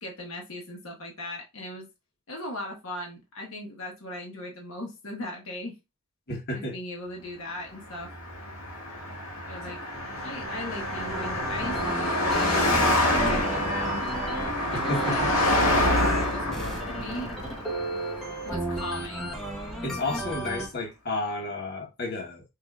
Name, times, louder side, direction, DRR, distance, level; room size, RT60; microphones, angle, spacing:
voice 1, 0.0-1.9 2.3-5.8 6.5-8.1 9.5-9.8 10.2-14.1 14.7-15.2 15.5-17.3 18.4-19.3, left 1 dB, 65° left, 1.2 m, -38 dB
voice 2, 6.3-6.7 14.7-15.3 19.8-22.4, left 2 dB, 50° left, 1.2 m, -32 dB
Car passing by, 8.0-19.5, left 1 dB, 85° left, 1.6 m, -27 dB
sound 1, 9.9-20.7, right 1 dB, ahead, 1.0 m, -35 dB
5.8 x 2.7 x 2.4 m
head